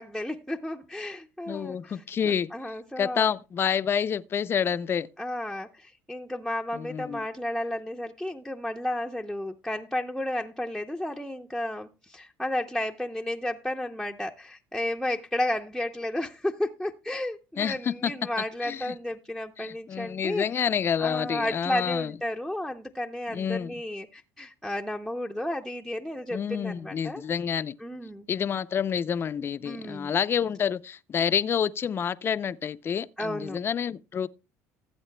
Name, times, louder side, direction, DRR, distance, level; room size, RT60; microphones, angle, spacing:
voice 1, 0.0-3.3 5.2-20.7 21.0-27.2 27.8-28.3 29.6-30.1 33.2-33.6, left 1 dB, ahead, 0.7 m, -33 dB
voice 2, 1.5-2.5 3.0-5.1 6.7-7.2 17.6-18.3 18.6-18.9 19.6-22.1 23.3-23.7 26.3-27.8 28.3-34.3, left 7 dB, 35° left, 0.5 m, -28 dB
17.5 x 8.2 x 2.2 m
supercardioid pair, 100°, 7 cm